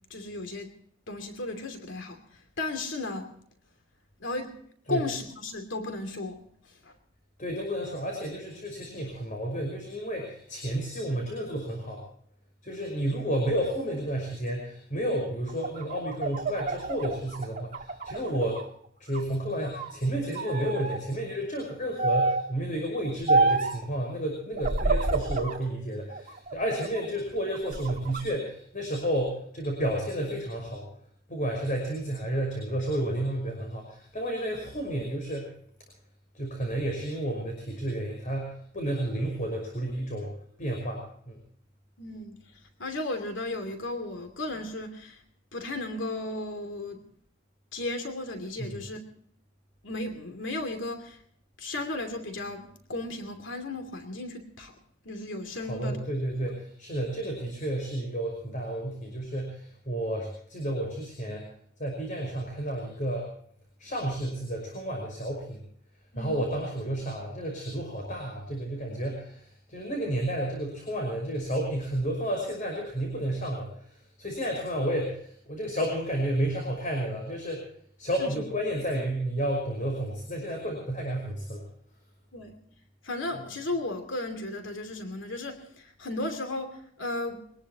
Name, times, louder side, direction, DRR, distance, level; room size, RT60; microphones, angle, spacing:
voice 1, 0.1-0.7 1.1-3.3 4.2-4.5 4.9-6.4 6.8-6.9 42.0-42.4 42.8-45.2 45.5-47.0 47.7-49.0 49.8-51.2 51.6-54.7 55.0-56.0 66.1-66.3 78.2-78.3 82.3-82.6 83.0-87.5, left 2 dB, 75° left, 6 dB, 2.8 m, -35 dB
voice 2, 7.4-12.0 12.6-18.6 19.0-30.9 31.3-35.5 36.3-40.3 40.6-41.4 48.6-48.8 55.7-61.5 61.8-63.3 63.8-65.6 66.1-77.7 78.0-81.6, right 1 dB, 40° left, 1 dB, 5.6 m, -31 dB
sound 1, 15.5-18.7 19.1-20.0 20.4-21.0 22.0-22.5 23.3-23.8 24.6-25.6 26.1-27.1 27.5-28.2, right 3 dB, 40° right, 2.2 m, -28 dB
24.5 x 19.0 x 3.0 m, 0.62 s
head